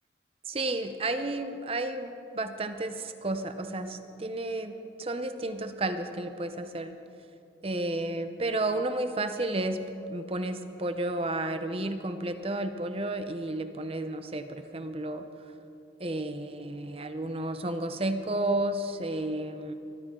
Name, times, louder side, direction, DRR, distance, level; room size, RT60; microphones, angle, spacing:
voice 1, 0.5-7.0 7.6-15.2 16.0-19.7, right 2 dB, 30° right, 9 dB, 0.8 m, -32 dB
23.0 x 14.0 x 3.8 m, 2.7 s
head